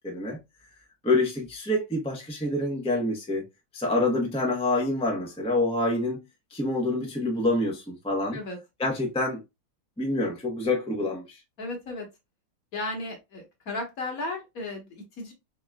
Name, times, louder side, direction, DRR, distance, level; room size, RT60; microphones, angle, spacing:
voice 1, 0.0-0.4 1.0-3.4 3.7-6.2 6.5-8.4 8.8-9.4 10.0-11.4, left 2 dB, 10° left, 0.3 m, -27 dB
voice 2, 11.6-12.1 12.7-15.3, left 2 dB, 50° left, 1.6 m, -35 dB
3.9 x 3.6 x 2.2 m
omnidirectional pair, 2.1 m